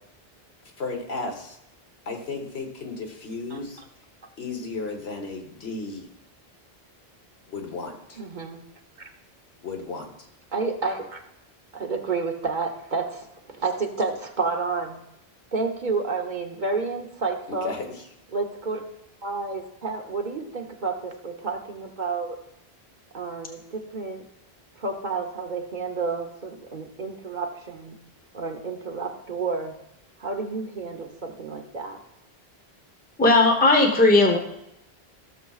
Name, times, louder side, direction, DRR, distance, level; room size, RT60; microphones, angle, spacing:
voice 1, 0.8-1.6 2.1-3.8 4.4-6.1 7.4-8.2 9.6-10.1 17.5-18.0, left 3 dB, 80° left, 3 dB, 1.5 m, -34 dB
voice 2, 8.2-8.6 9.0-9.1 10.5-11.2 11.7-13.3 13.6-15.0 15.5-17.7 18.3-18.8 19.2-22.4 23.1-24.2 24.8-28.0 28.3-29.7 30.2-32.0, right 4 dB, 50° right, 3 dB, 1.0 m, -30 dB
voice 3, 33.2-34.4, left 2 dB, 10° left, 2 dB, 0.9 m, -17 dB
15.5 x 6.9 x 2.4 m, 0.81 s
omnidirectional pair, 1.1 m